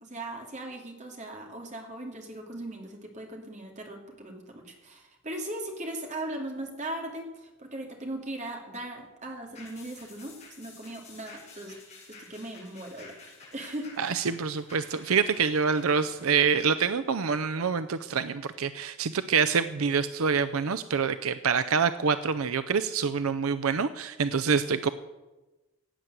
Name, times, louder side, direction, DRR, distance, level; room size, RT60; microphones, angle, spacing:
voice 1, 0.0-11.7 12.1-13.9, right 1 dB, 30° right, 2 dB, 2.6 m, -39 dB
sound 1, 9.5-18.3 18.7-18.8, left 3 dB, 30° left, 6.4 m, -51 dB
voice 2, 14.0-24.9, right 6 dB, 75° right, 11 dB, 0.6 m, -26 dB
16.5 x 9.1 x 8.0 m, 1.1 s
head